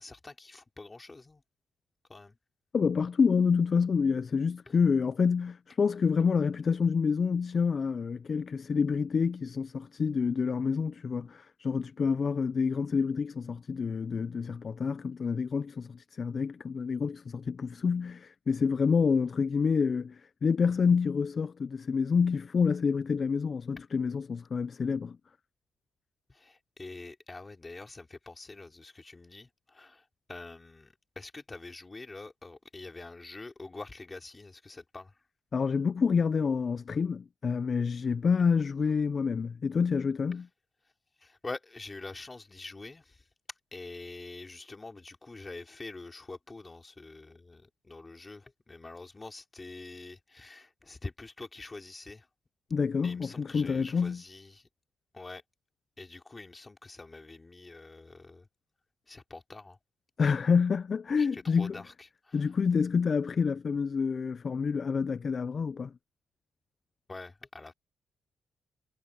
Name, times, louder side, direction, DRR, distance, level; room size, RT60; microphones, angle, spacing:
voice 1, 0.0-1.4 2.1-2.4 4.7-4.8 26.3-35.2 41.2-43.2 43.7-52.3 53.0-54.7 55.1-55.4 56.0-58.5 59.1-59.8 61.2-62.5 67.1-67.7, left 3 dB, 20° left, 3.0 m, -45 dB
voice 2, 2.7-25.2 35.5-40.5 52.7-54.2 60.2-61.8 62.3-65.9, left 5 dB, 40° left, 0.4 m, -28 dB
cardioid pair, 125°, 0 cm